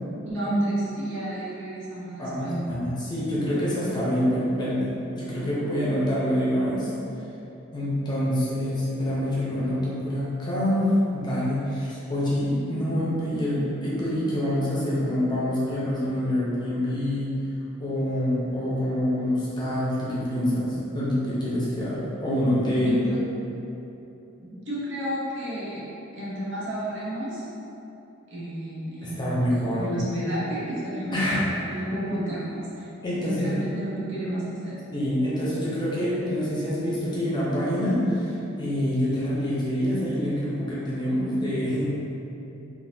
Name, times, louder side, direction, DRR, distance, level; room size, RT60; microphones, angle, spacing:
voice 1, 0.2-2.6 22.8-23.2 24.4-25.8 26.1-27.5 28.3-29.4 29.7-32.9 33.2-34.8, right 1 dB, 65° right, -8 dB, 0.9 m, -31 dB
voice 2, 2.2-6.9 7.7-10.9 11.1-17.3 17.8-23.0 29.0-29.8 31.1-31.4 33.0-33.6 34.9-41.9, equal, 20° left, -8 dB, 0.7 m, -26 dB
3.6 x 2.6 x 2.7 m, 2.9 s
head